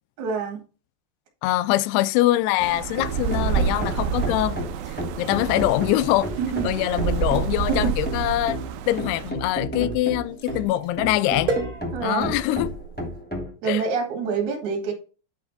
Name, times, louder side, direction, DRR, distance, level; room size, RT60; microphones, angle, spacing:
voice 1, 0.2-0.6 6.4-7.0 7.7-8.0 11.9-12.4 13.4-14.9, right 6 dB, 50° right, 3.0 m, -27 dB
voice 2, 1.4-4.6 5.2-6.3 6.6-8.6 8.9-11.6 12.0-12.7 13.7-13.8, left 15 dB, 85° left, 2.5 m, -23 dB
sound 1, 2.6-13.5, equal, 5° left, 0.8 m, -33 dB
sound 2, 2.6-9.3, right 7 dB, 80° right, 2.2 m, -28 dB
sound 3, 4.7-13.2, right 3 dB, 25° right, 2.6 m, -38 dB
9.0 x 5.0 x 4.0 m
omnidirectional pair, 4.7 m